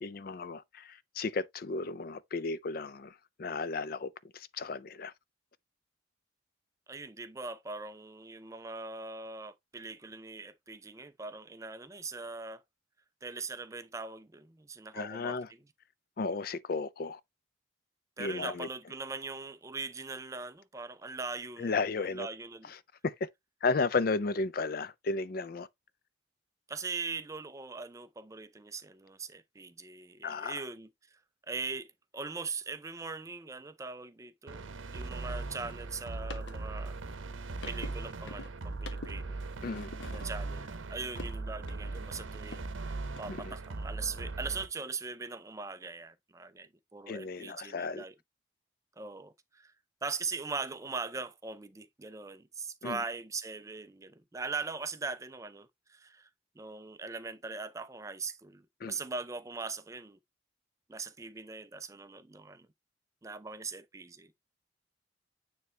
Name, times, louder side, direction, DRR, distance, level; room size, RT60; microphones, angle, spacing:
voice 1, 0.0-5.1 14.9-15.5 16.2-17.2 18.2-18.7 21.6-22.3 22.7-22.8 23.0-23.3 23.6-25.7 30.2-30.6 39.6-39.9 43.3-43.5 47.1-48.0 52.8-53.0 58.8-59.0, left 4 dB, 50° left, 0.4 m, -34 dB
voice 2, 6.9-12.6 13.2-15.4 18.2-21.8 22.0-22.7 26.7-31.2 31.5-37.0 37.6-39.4 40.1-48.1 49.0-49.7 50.0-56.3 56.6-60.2 60.9-62.7 63.2-64.3, right 4 dB, 15° right, 0.4 m, -41 dB
sound 1, 34.5-44.7, right 3 dB, 85° right, 0.7 m, -39 dB
sound 2, 35.7-42.7 43.0-44.5, left 2 dB, 65° left, 0.9 m, -49 dB
9.3 x 3.2 x 3.2 m
head